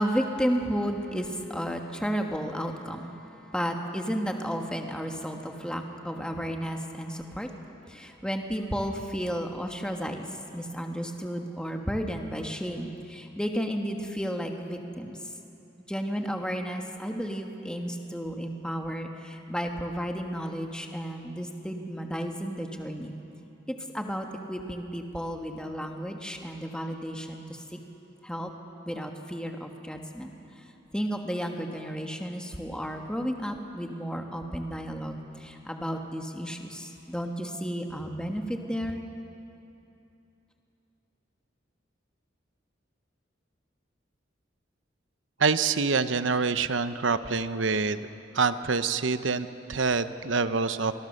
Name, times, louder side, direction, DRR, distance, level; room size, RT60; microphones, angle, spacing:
voice 1, 0.0-3.1 3.5-7.5 7.9-10.2 10.5-15.2 15.9-23.1 23.7-27.8 28.2-28.5 28.8-30.3 30.6-30.7 30.9-39.0, equal, 5° left, 3 dB, 1.4 m, -33 dB
voice 2, 45.4-48.1 48.3-50.9, right 4 dB, 85° right, 12 dB, 0.9 m, -26 dB
26.0 x 21.0 x 6.6 m, 2.9 s
head